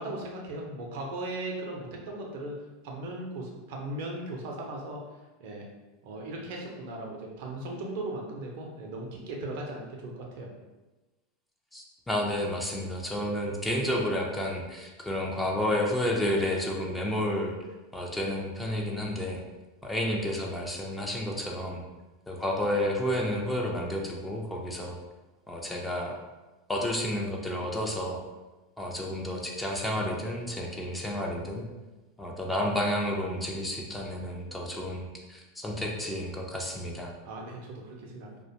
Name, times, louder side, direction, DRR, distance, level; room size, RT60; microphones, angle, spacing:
voice 1, 0.0-2.6 2.8-5.0 5.4-5.7 6.0-10.5 37.2-38.4, right 2 dB, 60° right, -1 dB, 0.5 m, -37 dB
voice 2, 11.7-17.6 17.9-19.4 19.8-21.8 22.3-25.0 25.5-26.2 26.7-28.2 28.8-31.7 32.2-37.1, left 1 dB, 10° left, -1 dB, 0.5 m, -31 dB
2.4 x 2.1 x 2.7 m, 1.1 s
hypercardioid pair, 90°, 0 cm